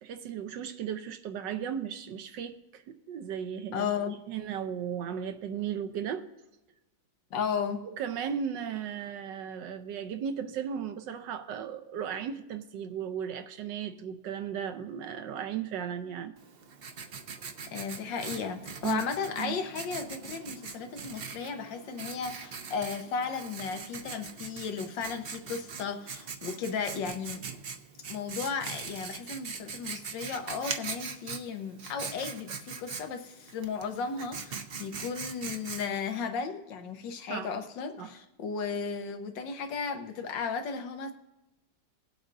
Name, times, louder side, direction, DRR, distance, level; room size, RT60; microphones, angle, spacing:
voice 1, 0.0-3.9 4.3-6.3 7.8-16.3 18.8-19.0 19.4-19.6 37.3-37.5 38.0-38.1, right 8 dB, 80° right, 9 dB, 1.4 m, -36 dB
voice 2, 3.7-4.2 7.3-7.8 17.7-27.4 28.1-41.1, left 6 dB, 90° left, 7 dB, 1.7 m, -35 dB
Writing, 16.4-36.2, right 5 dB, 60° right, 0.6 m, -41 dB
20.5 x 7.8 x 2.6 m, 1.0 s
omnidirectional pair, 1.9 m